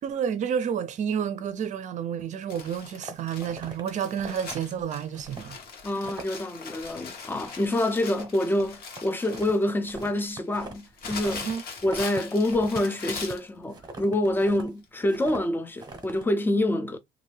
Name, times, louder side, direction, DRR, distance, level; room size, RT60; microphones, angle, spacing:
voice 1, 0.0-5.6 11.4-11.6, right 8 dB, 45° right, 0.5 m, -30 dB
Crumpling crinkling, 2.5-13.5 14.4-14.5 14.8-14.9, left 5 dB, 65° left, 1.0 m, -41 dB
sound 1, 2.9-3.8 4.2-4.6 5.1-5.5 5.8-6.4 6.7-7.0 7.3-7.7 8.0-11.5 11.8-14.7 15.1-15.4 15.8-16.2, right 3 dB, 25° right, 0.9 m, -42 dB
voice 2, 5.8-11.5 11.8-17.0, left 1 dB, 10° left, 0.5 m, -26 dB
2.6 x 2.5 x 3.2 m
cardioid pair, 110°, 17 cm